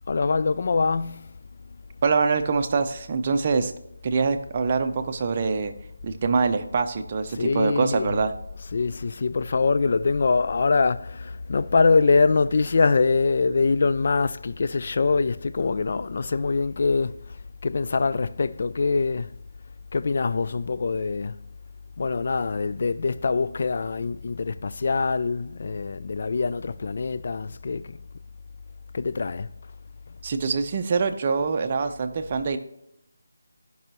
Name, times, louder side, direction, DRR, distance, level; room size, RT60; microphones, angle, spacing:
voice 1, 0.1-1.3 7.3-8.2 8.5-19.3 19.9-21.4 22.0-28.0 28.9-29.5, left 4 dB, 50° left, 0.3 m, -24 dB
voice 2, 2.0-3.7 4.0-5.7 6.0-8.3 30.2-32.6, right 4 dB, 35° right, 0.6 m, -24 dB
14.5 x 5.5 x 3.0 m
figure-of-eight pair, 160°, 0 cm